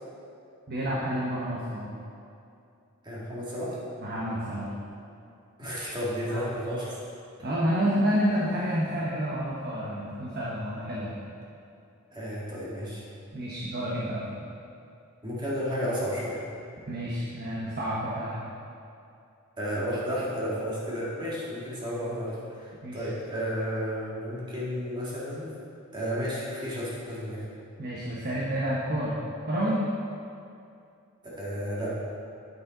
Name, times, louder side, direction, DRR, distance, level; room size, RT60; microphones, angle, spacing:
voice 1, 0.7-1.9 4.0-4.7 6.3-6.5 7.4-11.1 13.3-14.2 16.9-18.4 22.8-23.1 27.8-29.1 29.5-29.8, equal, 50° right, -6 dB, 1.2 m, -29 dB
voice 2, 3.0-3.8 5.6-7.0 12.1-13.0 15.2-16.4 19.6-25.5 25.9-27.4 31.4-31.9, equal, 20° right, -8 dB, 2.3 m, -32 dB
8.7 x 8.3 x 4.0 m, 2.5 s
head